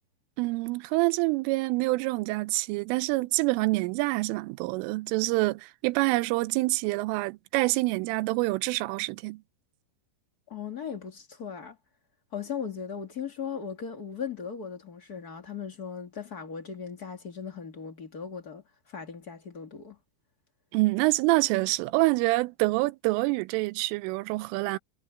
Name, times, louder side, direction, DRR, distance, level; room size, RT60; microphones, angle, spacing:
voice 1, 0.4-9.4 20.7-24.8, right 22 dB, 90° right, 3.2 m, -26 dB
voice 2, 10.5-11.8 12.3-20.0, left 7 dB, 80° left, 0.8 m, -38 dB
omnidirectional pair, 5.6 m